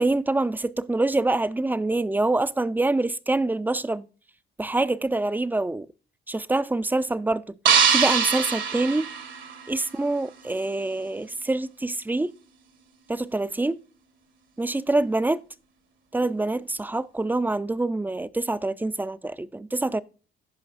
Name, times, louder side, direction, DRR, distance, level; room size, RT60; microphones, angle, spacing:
voice 1, 0.0-4.1 4.6-5.9 6.3-7.6 7.9-9.1 9.7-12.3 13.1-13.8 14.6-15.4 16.1-20.0, right 2 dB, 10° right, 0.4 m, -25 dB
sound 1, 7.7-9.9, right 7 dB, 75° right, 1.6 m, -23 dB
15.5 x 5.3 x 2.5 m
cardioid pair, 90°, 20 cm